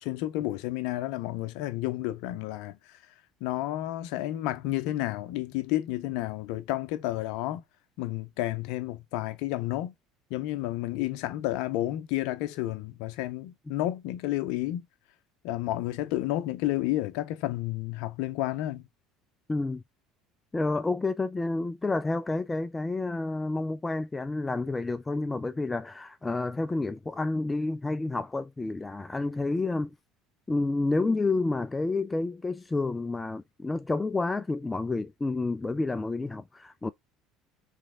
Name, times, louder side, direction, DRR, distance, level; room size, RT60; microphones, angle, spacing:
voice 1, 0.0-3.0 3.4-7.6 8.0-9.9 10.3-14.9 15.4-18.8, left 15 dB, 70° left, 0.7 m, -31 dB
voice 2, 19.5-19.8 20.5-29.9 30.5-36.9, left 3 dB, 15° left, 0.4 m, -29 dB
3.4 x 3.1 x 3.6 m
hypercardioid pair, 80°, 0 cm